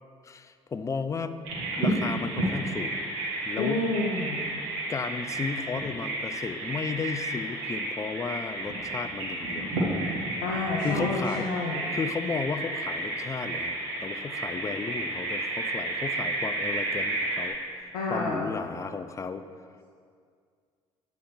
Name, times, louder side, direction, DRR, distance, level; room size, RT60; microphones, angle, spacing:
voice 1, 0.2-1.4 1.8-3.1 3.5-3.9 4.9-9.7 10.8-11.5 11.9-17.6 18.1-19.4, left 5 dB, 20° left, 10 dB, 0.3 m, -34 dB
Bird vocalization bird call bird song, 1.4-17.5, right 2 dB, 70° right, 1.2 m, -31 dB
voice 2, 3.6-4.5 10.4-11.9 17.9-18.6, left 2 dB, 65° left, -1 dB, 0.6 m, -29 dB
7.3 x 3.4 x 4.3 m, 2.1 s
figure-of-eight pair, 50°, 14 cm